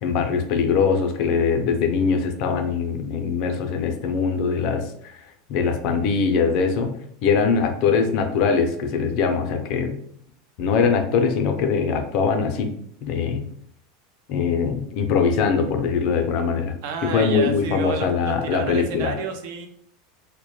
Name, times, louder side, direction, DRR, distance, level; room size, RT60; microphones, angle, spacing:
voice 1, 0.0-5.2 5.5-6.9 7.2-10.0 10.6-12.7 13.0-13.4 14.3-16.7 17.1-19.1, left 5 dB, 60° left, 5 dB, 0.4 m, -22 dB
voice 2, 16.8-19.7, right 3 dB, 70° right, 5 dB, 0.4 m, -30 dB
2.1 x 2.1 x 2.9 m, 0.66 s
supercardioid pair, 120°, 0 cm